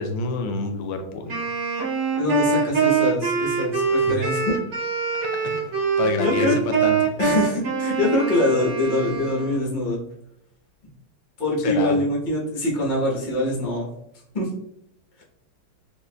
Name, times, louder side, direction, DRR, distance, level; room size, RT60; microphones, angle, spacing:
voice 1, 0.0-1.5 4.0-4.2 5.4-7.1 11.6-12.0, left 3 dB, 80° left, 5 dB, 1.4 m, -28 dB
Wind instrument woodwind instrument, 1.3-9.7, right 5 dB, 80° right, 1.8 m, -24 dB
voice 2, 2.2-4.5 6.2-6.6 7.2-10.0 11.4-13.9 14.3-14.5, left 1 dB, 50° left, -3 dB, 0.5 m, -24 dB
4.4 x 2.6 x 2.2 m, 0.79 s
omnidirectional pair, 2.4 m